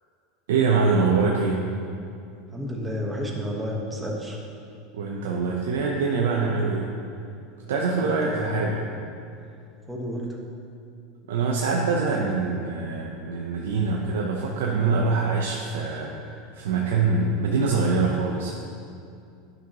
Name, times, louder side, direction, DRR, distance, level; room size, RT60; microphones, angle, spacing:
voice 1, 0.5-1.7 4.9-6.9 7.7-8.8 11.3-18.5, right 4 dB, 85° right, -2 dB, 0.7 m, -24 dB
voice 2, 2.5-4.4 8.0-8.7 9.9-10.4, equal, 10° right, -1 dB, 1.3 m, -31 dB
11.5 x 5.4 x 3.0 m, 2.5 s
supercardioid pair, 115°, 0 cm